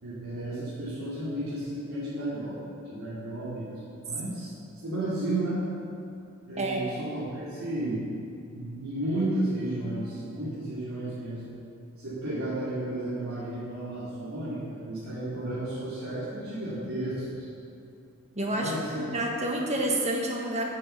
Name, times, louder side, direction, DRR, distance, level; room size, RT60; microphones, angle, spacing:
voice 1, 0.0-2.6 2.8-3.8 4.1-4.5 4.8-5.7 6.5-11.5 12.0-17.5 18.5-19.2, right 1 dB, 80° right, -11 dB, 2.5 m, -33 dB
voice 2, 18.3-20.6, right 1 dB, 30° right, 0 dB, 1.4 m, -29 dB
8.7 x 7.4 x 6.9 m, 2.6 s
head